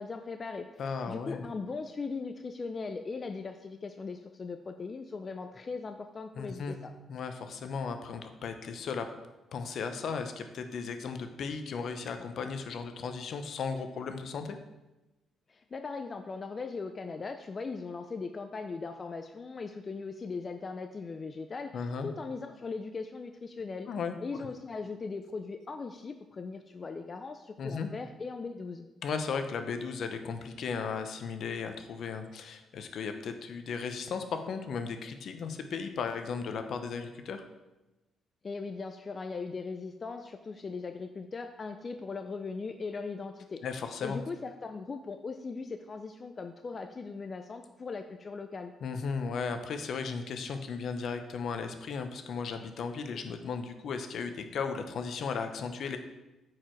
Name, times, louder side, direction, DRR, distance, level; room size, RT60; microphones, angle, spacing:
voice 1, 0.0-6.9 15.5-23.9 24.2-28.9 38.4-43.6 44.0-48.7, left 4 dB, 35° left, 7 dB, 0.5 m, -39 dB
voice 2, 0.8-1.5 6.4-6.7 7.1-9.1 9.5-14.6 21.7-22.1 23.9-24.1 27.6-27.9 29.0-37.4 43.6-44.2 48.8-56.0, left 5 dB, 65° left, 7 dB, 0.8 m, -36 dB
8.5 x 4.9 x 4.6 m, 1.0 s
cardioid pair, 90°, 0 cm